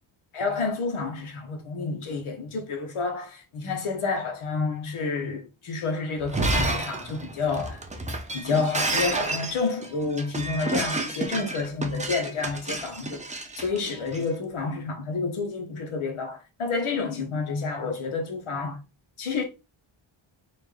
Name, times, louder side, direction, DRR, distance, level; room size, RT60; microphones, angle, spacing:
voice 1, 0.3-7.8 8.3-18.8 19.2-19.4, left 4 dB, 80° left, 1.3 m, -29 dB
Shatter, 6.2-14.2, right 2 dB, 15° right, 0.6 m, -30 dB
4.3 x 2.7 x 3.4 m
wide cardioid pair, 135°, 49 cm